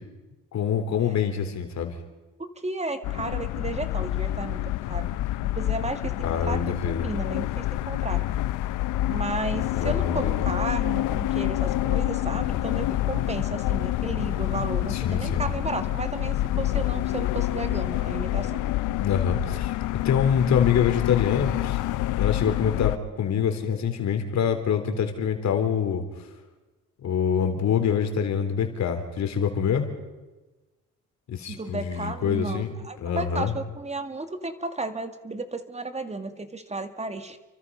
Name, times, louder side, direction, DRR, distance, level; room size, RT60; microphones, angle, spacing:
voice 1, 0.5-2.0 6.2-7.1 9.7-10.4 14.9-15.5 19.0-21.8 22.1-26.0 27.0-29.9 31.3-32.7 33.0-33.5, left 7 dB, 65° left, 6 dB, 3.7 m, -25 dB
voice 2, 2.4-5.1 5.4-8.2 9.1-18.6 31.5-37.4, right 2 dB, 20° right, 8 dB, 2.3 m, -33 dB
sound 1, 3.0-23.0, left 14 dB, 90° left, 0.8 m, -27 dB
29.5 x 24.5 x 5.5 m, 1.1 s
cardioid pair, 90°, 30 cm